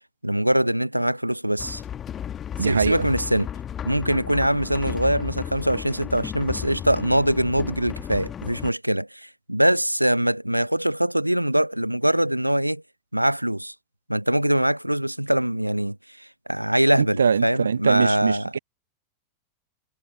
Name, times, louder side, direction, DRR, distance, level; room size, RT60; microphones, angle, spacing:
voice 1, 0.2-1.8 2.6-3.5 3.8-12.8 13.1-13.7 14.1-18.5, right 1 dB, 90° right, 0.8 m, -23 dB
sound 1, 1.6-8.7, left 9 dB, 25° left, 1.6 m, -34 dB
voice 2, 2.6-3.0 17.0-18.6, right 6 dB, 70° right, 1.1 m, -22 dB
figure-of-eight pair, 90°, 0 cm